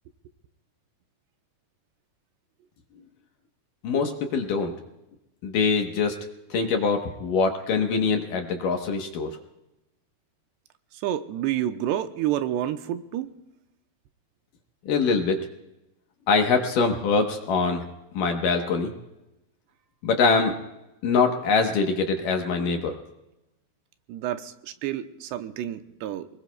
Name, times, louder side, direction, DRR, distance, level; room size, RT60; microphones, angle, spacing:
voice 1, 3.8-4.7 5.4-6.2 6.5-9.3 14.9-15.5 16.3-17.9 18.1-18.9 20.0-20.5 21.0-23.0, left 4 dB, 65° left, 3 dB, 2.4 m, -23 dB
voice 2, 11.0-13.3 24.1-26.3, right 12 dB, 90° right, 8 dB, 2.9 m, -29 dB
28.0 x 20.5 x 2.3 m, 0.95 s
omnidirectional pair, 4.9 m